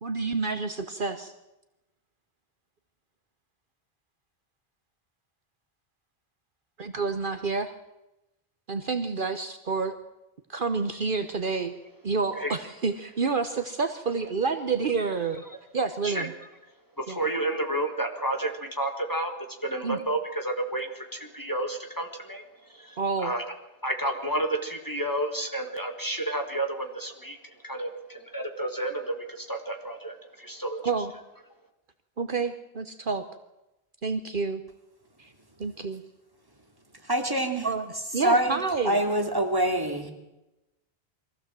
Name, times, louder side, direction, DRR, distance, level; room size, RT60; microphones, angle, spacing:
voice 1, 0.0-1.3 6.8-7.7 8.7-10.0 10.5-11.8 12.0-15.4 15.7-16.3 17.1-17.2 19.8-20.0 23.0-23.3 30.8-31.1 32.2-33.2 34.0-34.6 35.2-35.3 35.6-36.0 37.6-37.9 38.1-39.0, right 4 dB, 55° right, 9 dB, 1.2 m, -28 dB
voice 2, 17.0-19.3 19.6-22.4 22.7-23.4 23.8-27.4 27.6-30.8, right 1 dB, 20° left, 4 dB, 1.8 m, -31 dB
voice 3, 37.0-37.7 38.2-40.1, right 1 dB, 20° right, 3 dB, 2.6 m, -25 dB
23.0 x 15.5 x 7.6 m, 0.95 s
omnidirectional pair, 1.1 m